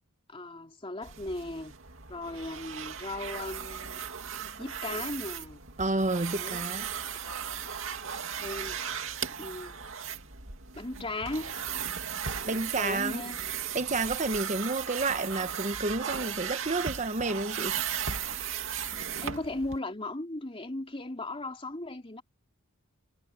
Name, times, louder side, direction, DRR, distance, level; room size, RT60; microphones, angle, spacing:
voice 1, 0.3-1.7 2.1-4.0 4.6-5.6 6.3-6.6 7.3-7.4 8.4-8.8 9.4-9.8 10.7-11.5 12.5-13.4 19.2-22.2, left 2 dB, 25° left, 3.1 m, -37 dB
sound 1, 1.0-19.8, right 8 dB, 70° right, 2.5 m, -36 dB
voice 2, 5.8-6.9 12.4-13.2 13.7-17.7, right 3 dB, 35° right, 1.2 m, -30 dB
head